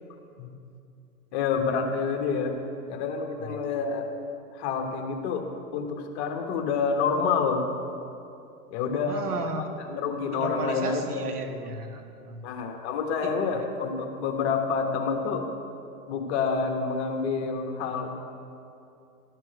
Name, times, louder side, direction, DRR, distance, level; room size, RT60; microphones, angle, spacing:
voice 1, 1.3-2.6 2.9-4.0 4.5-7.6 8.7-9.2 9.9-11.3 12.4-15.4 16.1-18.4, left 5 dB, 45° left, 3 dB, 1.4 m, -28 dB
voice 2, 9.1-9.7 10.3-12.5 13.2-13.6, right 3 dB, 80° right, 6 dB, 1.3 m, -34 dB
12.5 x 4.6 x 7.8 m, 2.6 s
hypercardioid pair, 125°, 46 cm